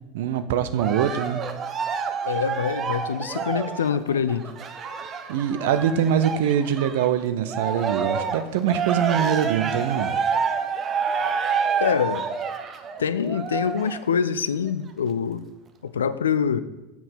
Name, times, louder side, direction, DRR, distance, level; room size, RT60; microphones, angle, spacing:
voice 1, 0.1-1.5 5.3-10.1, right 9 dB, 60° right, 11 dB, 0.5 m, -23 dB
Cheering, 0.8-7.1 7.5-14.1 14.7-14.8, right 6 dB, 30° right, 0.8 m, -28 dB
voice 2, 2.2-4.5 11.8-12.2 13.0-15.5 15.8-16.6, left 7 dB, 75° left, 14 dB, 0.4 m, -25 dB
7.0 x 6.0 x 5.7 m, 1.0 s
figure-of-eight pair, 80°, 0 cm